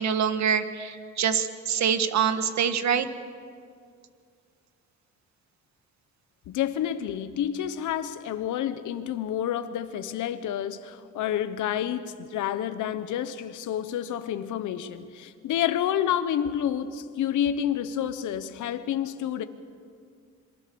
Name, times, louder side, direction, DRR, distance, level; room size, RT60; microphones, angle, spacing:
voice 1, 0.0-3.1, right 7 dB, 65° right, 1.6 m, -25 dB
voice 2, 6.5-19.4, left 10 dB, 80° left, 1.1 m, -29 dB
27.0 x 22.5 x 7.1 m
cardioid pair, 90°, 30 cm